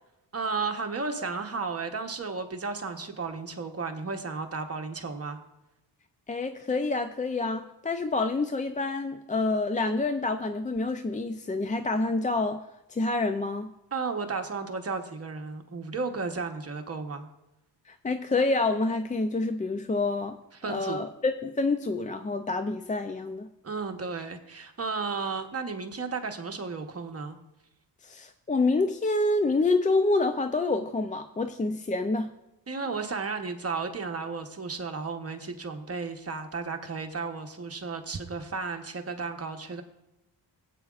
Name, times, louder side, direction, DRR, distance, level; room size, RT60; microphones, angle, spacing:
voice 1, 0.3-5.4 13.9-17.3 20.5-21.0 23.6-27.4 32.7-39.8, right 4 dB, 35° right, 5 dB, 1.0 m, -33 dB
voice 2, 6.3-12.6 12.9-13.7 17.9-20.4 20.7-23.5 28.0-32.3, left 3 dB, 20° left, 8 dB, 0.3 m, -27 dB
19.0 x 8.5 x 2.4 m, 0.91 s
wide cardioid pair, 135°, 43 cm